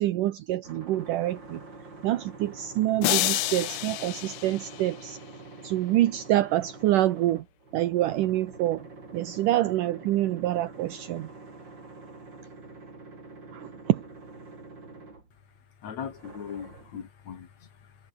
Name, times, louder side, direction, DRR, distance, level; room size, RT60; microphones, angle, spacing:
voice 1, 0.0-1.6 2.0-5.2 5.6-7.5 7.7-8.9 9.1-11.3 13.5-14.0, right 14 dB, 70° right, 2.4 m, -26 dB
Concrete drilling sounds, 0.6-15.6 16.0-17.0, right 3 dB, 30° right, 5.6 m, -46 dB
sound 1, 3.0-5.3, left 18 dB, 80° left, 2.0 m, -29 dB
voice 2, 15.8-18.1, left 7 dB, 50° left, 3.7 m, -40 dB
omnidirectional pair, 4.1 m